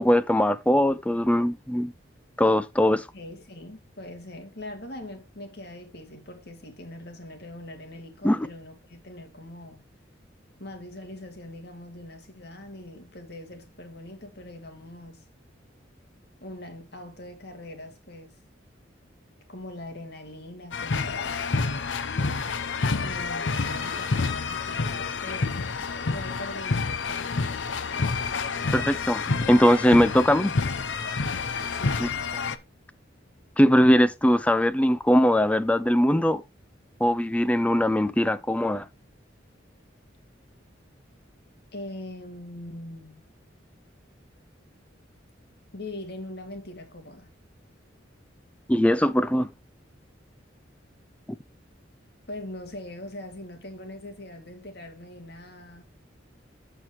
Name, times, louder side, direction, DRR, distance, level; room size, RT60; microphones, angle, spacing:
voice 1, 0.0-1.9 2.4-3.0 8.2-8.5 28.7-30.5 32.0-32.1 33.6-36.4 37.0-38.9 48.7-49.5, equal, 5° left, 0.4 m, -21 dB
voice 2, 2.9-9.8 10.6-15.2 16.4-18.3 19.5-21.4 23.0-27.7 31.7-32.1 41.7-43.3 45.7-47.3 52.3-55.8, left 1 dB, 60° left, 2.3 m, -42 dB
sound 1, 20.7-32.6, left 4 dB, 80° left, 0.7 m, -28 dB
14.0 x 4.6 x 3.0 m
head